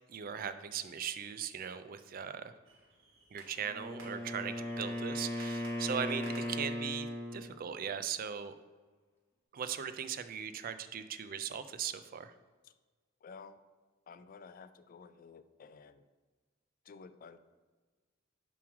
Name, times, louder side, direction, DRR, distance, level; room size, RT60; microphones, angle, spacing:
voice 1, 0.1-2.5 3.3-8.5 9.5-12.3, right 7 dB, 45° right, 11 dB, 0.4 m, -39 dB
sound 1, 2.6-8.1, right 2 dB, 85° right, 1.5 m, -58 dB
Wind instrument woodwind instrument, 3.6-7.5, left 1 dB, 10° left, 1.3 m, -37 dB
voice 2, 13.2-13.6 14.1-16.0 16.9-17.4, left 5 dB, 45° left, 12 dB, 0.3 m, -52 dB
7.1 x 3.1 x 5.9 m, 1.4 s
head